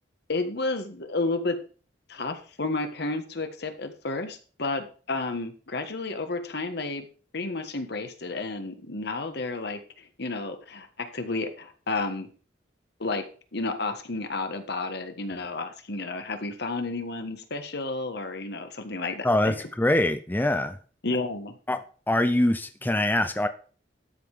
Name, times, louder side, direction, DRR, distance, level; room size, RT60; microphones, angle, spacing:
voice 1, 0.3-1.6 2.1-7.1 7.3-12.3 13.0-13.2 13.5-19.5 21.0-21.6, left 3 dB, 65° left, 7 dB, 1.5 m, -31 dB
voice 2, 19.2-20.8 21.7-21.8 22.1-23.5, left 1 dB, 10° left, 9 dB, 0.5 m, -24 dB
12.5 x 5.7 x 4.9 m, 0.40 s
head